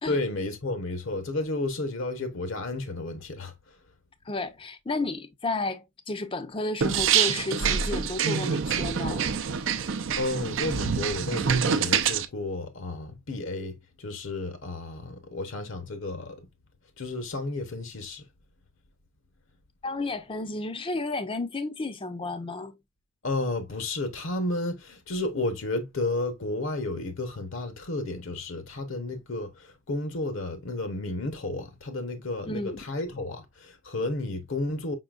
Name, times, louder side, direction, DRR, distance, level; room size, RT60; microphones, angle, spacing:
voice 1, 0.0-3.8 9.8-16.4 17.0-18.3 23.2-35.0, left 2 dB, 60° left, 0.8 m, -32 dB
voice 2, 4.3-9.3 19.8-22.8 32.5-32.8, left 2 dB, 25° left, 0.5 m, -32 dB
sound 1, 6.8-12.3, right 7 dB, 60° right, 0.5 m, -26 dB
5.3 x 3.8 x 2.3 m
head